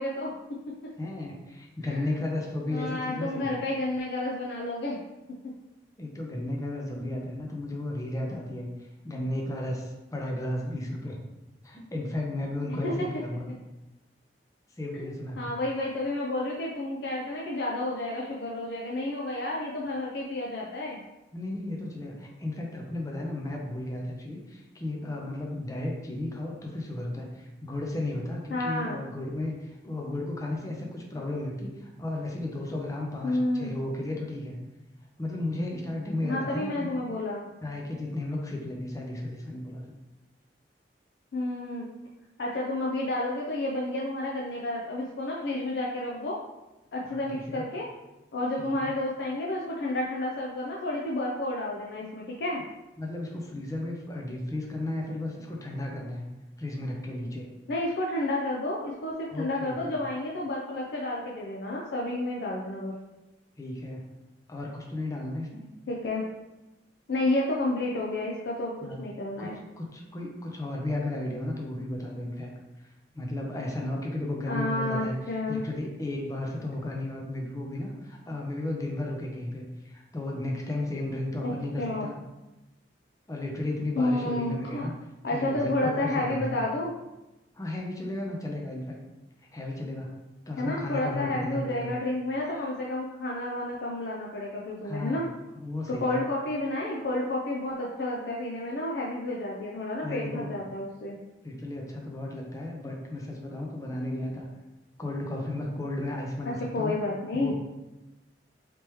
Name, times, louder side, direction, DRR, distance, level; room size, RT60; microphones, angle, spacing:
voice 1, 0.0-0.9 1.9-2.0 2.7-5.0 5.4-5.5 12.8-13.1 14.9-15.0 15.4-21.0 28.5-29.0 33.2-33.7 36.2-37.4 41.3-41.9 42.4-46.4 46.9-47.9 48.3-52.6 57.7-63.0 65.9-66.2 67.1-68.7 69.0-69.6 74.5-75.6 81.4-81.5 81.8-82.1 84.0-84.9 85.2-86.9 90.6-95.2 95.9-101.2 106.4-107.5, left 1 dB, 70° left, -3 dB, 0.4 m, -30 dB
voice 2, 1.0-3.5 6.0-11.2 11.6-13.4 14.8-15.6 21.3-34.6 35.2-37.0 37.6-39.8 47.0-47.6 48.7-48.9 53.0-56.2 56.6-57.5 59.3-60.0 63.6-64.1 64.5-65.6 68.8-69.0 69.4-69.5 69.8-72.5 73.1-75.1 75.5-82.2 83.3-84.9 85.3-86.6 87.5-89.0 89.5-90.2 90.5-91.9 92.4-92.7 94.8-95.2 95.6-96.2 100.0-100.6 101.4-104.5 105.0-106.9 107.3-107.5, left 1 dB, 20° left, -1 dB, 0.6 m, -34 dB
3.4 x 2.9 x 3.0 m, 1.0 s
head